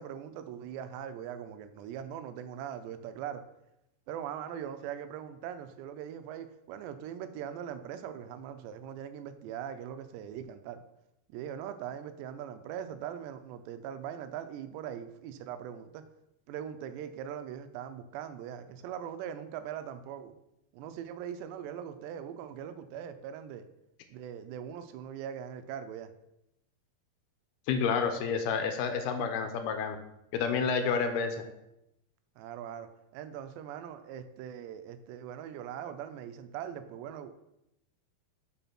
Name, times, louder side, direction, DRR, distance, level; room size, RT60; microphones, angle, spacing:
voice 1, 0.0-3.4 4.1-10.8 11.3-16.1 16.5-20.3 20.7-23.7 24.1-26.1 32.4-37.3, right 9 dB, 85° right, 9 dB, 2.8 m, -41 dB
voice 2, 27.7-30.0 30.3-31.4, left 6 dB, 80° left, 7 dB, 2.4 m, -29 dB
6.1 x 5.4 x 5.8 m, 0.85 s
omnidirectional pair, 4.9 m